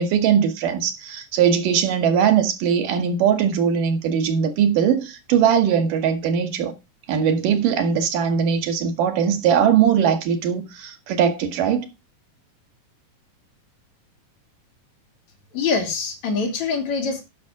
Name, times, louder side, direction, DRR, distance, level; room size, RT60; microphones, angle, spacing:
voice 1, 0.0-6.7 7.1-11.9, right 8 dB, 80° right, 3.0 m, -20 dB
voice 2, 15.5-17.2, left 4 dB, 60° left, 3.3 m, -24 dB
10.5 x 6.3 x 4.7 m
omnidirectional pair, 3.8 m